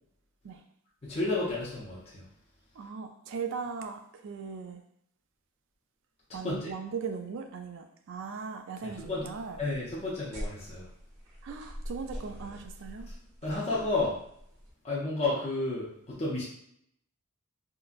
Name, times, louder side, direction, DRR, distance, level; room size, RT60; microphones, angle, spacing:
voice 1, 1.0-2.2 6.4-6.7 8.8-9.3 9.6-10.9 13.1-13.2 13.4-14.2 14.8-16.4, left 2 dB, 25° left, -7 dB, 0.5 m, -31 dB
voice 2, 2.8-4.8 6.3-9.6 11.4-13.1, right 5 dB, 55° right, 6 dB, 0.3 m, -38 dB
sound 1, 9.0-14.7, equal, 85° right, 1.0 m, -44 dB
3.7 x 2.1 x 2.4 m, 0.71 s
head